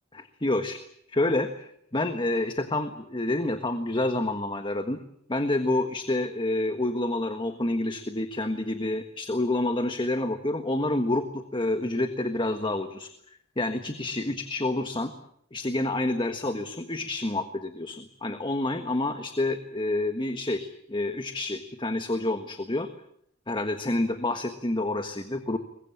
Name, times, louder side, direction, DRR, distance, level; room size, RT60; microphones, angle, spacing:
voice 1, 0.1-0.8 1.1-5.0 5.3-13.1 13.6-15.1 15.5-22.9 23.5-25.6, left 2 dB, 25° left, 8 dB, 1.5 m, -28 dB
23.5 x 21.5 x 8.7 m, 0.69 s
head